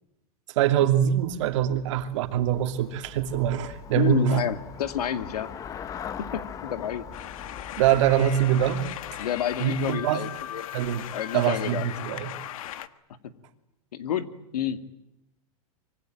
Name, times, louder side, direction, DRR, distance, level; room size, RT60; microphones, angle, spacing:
voice 1, 0.6-4.4 7.8-8.8 9.6-10.2 10.7-11.1 11.3-12.3, right 10 dB, 55° right, 7 dB, 2.8 m, -24 dB
Traffic noise roadway noise / Bicycle, 0.9-10.1, left 7 dB, 15° left, 0.9 m, -42 dB
voice 2, 3.9-5.5 6.2-7.1 9.2-10.7 11.1-11.9 13.9-14.3 14.5-14.8, left 9 dB, 85° left, 9 dB, 2.5 m, -29 dB
sound 1, 7.1-12.9, left 12 dB, 60° left, 1.5 m, -38 dB
25.5 x 24.0 x 9.2 m, 0.85 s
supercardioid pair, 155°, 19 cm